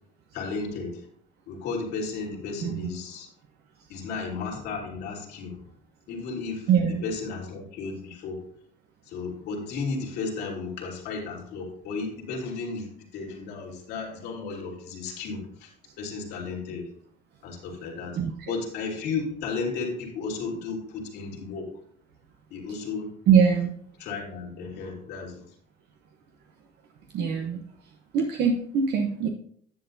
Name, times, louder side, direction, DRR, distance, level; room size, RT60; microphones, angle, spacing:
voice 1, 0.3-1.1 1.5-3.3 3.9-5.7 6.1-8.4 9.1-12.9 13.1-16.9 17.4-18.2 18.5-21.7 22.5-23.1 24.0-25.5, left 4 dB, 85° left, -3 dB, 3.0 m, -34 dB
voice 2, 6.7-7.0 18.2-18.5 23.3-23.7 27.1-27.6 28.1-29.3, right 6 dB, 75° right, 3 dB, 0.9 m, -22 dB
10.5 x 8.1 x 2.7 m, 0.62 s
cardioid pair, 110°, 17 cm